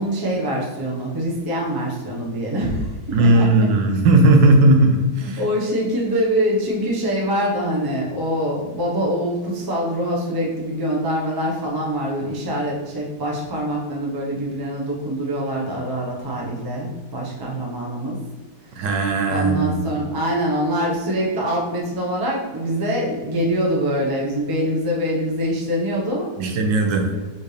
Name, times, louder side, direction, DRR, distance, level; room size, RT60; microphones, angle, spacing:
voice 1, 0.0-3.7 5.2-18.2 18.7-18.9 19.3-26.3 27.1-27.2, equal, 25° right, -4 dB, 0.4 m, -24 dB
voice 2, 3.1-5.4 18.8-20.0 26.4-27.1, right 2 dB, 75° right, 4 dB, 1.2 m, -17 dB
4.5 x 3.6 x 3.2 m, 1.2 s
omnidirectional pair, 2.0 m